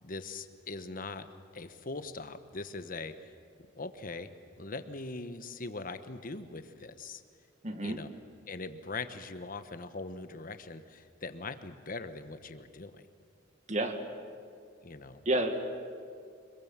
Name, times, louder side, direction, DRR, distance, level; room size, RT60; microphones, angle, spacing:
voice 1, 0.0-1.3 1.5-3.3 3.8-4.3 4.6-7.2 7.8-8.1 8.5-13.0 14.8-15.2, left 3 dB, 45° left, 10 dB, 1.2 m, -41 dB
voice 2, 7.6-8.0 13.7-14.0 15.3-15.5, right 1 dB, 40° right, 6 dB, 1.9 m, -29 dB
25.5 x 22.5 x 7.4 m, 2.3 s
head